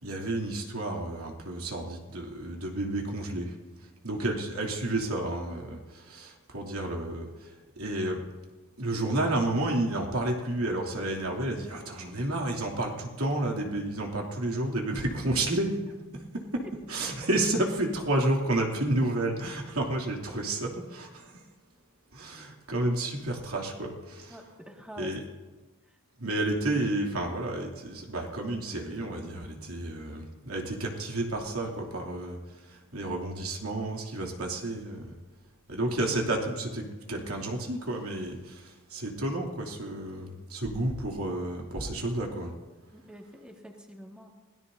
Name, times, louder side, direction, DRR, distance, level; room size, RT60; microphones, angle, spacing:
voice 1, 0.0-3.5 4.0-7.5 7.8-8.2 8.8-15.8 16.3-21.3 22.1-24.4 25.0-25.2 26.2-32.4 32.7-35.1 35.7-42.5, right 1 dB, 85° right, 0 dB, 2.9 m, -31 dB
voice 2, 24.3-25.1 42.9-44.3, equal, 5° right, 0 dB, 1.9 m, -46 dB
25.0 x 17.5 x 2.7 m, 1.3 s
head